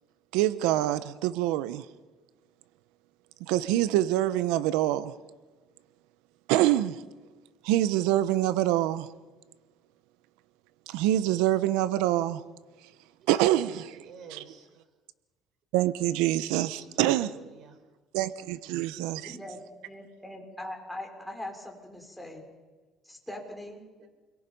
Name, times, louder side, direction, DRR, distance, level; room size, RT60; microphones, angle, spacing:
voice 1, 0.3-1.8 3.5-5.1 6.5-7.0 7.6-9.1 10.9-12.4 13.3-14.0 14.3-14.4 15.7-17.3 18.1-19.3, right 14 dB, 90° right, 1.0 m, -25 dB
voice 2, 13.2-14.7 16.5-17.8 19.2-19.3 24.0-24.1, right 6 dB, 60° right, 4.5 m, -50 dB
voice 3, 18.8-22.4 23.0-23.8, left 1 dB, 5° left, 5.6 m, -42 dB
29.5 x 22.5 x 5.5 m
cardioid pair, 100°, 0 cm